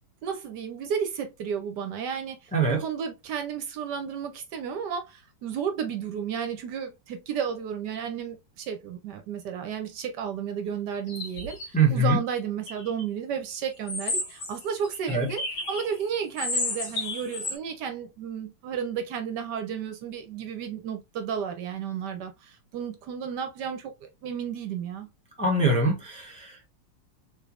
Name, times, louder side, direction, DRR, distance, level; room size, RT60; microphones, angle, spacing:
voice 1, 0.2-25.1, right 7 dB, 70° right, 1.2 m, -33 dB
voice 2, 2.5-2.8 11.7-12.2 15.1-15.3 25.4-26.7, right 2 dB, 5° left, 0.8 m, -23 dB
sound 1, 11.0-11.7 12.7-13.0 13.9-16.0 16.4-17.6, left 2 dB, 75° left, 1.9 m, -32 dB
3.8 x 3.3 x 2.4 m
omnidirectional pair, 2.0 m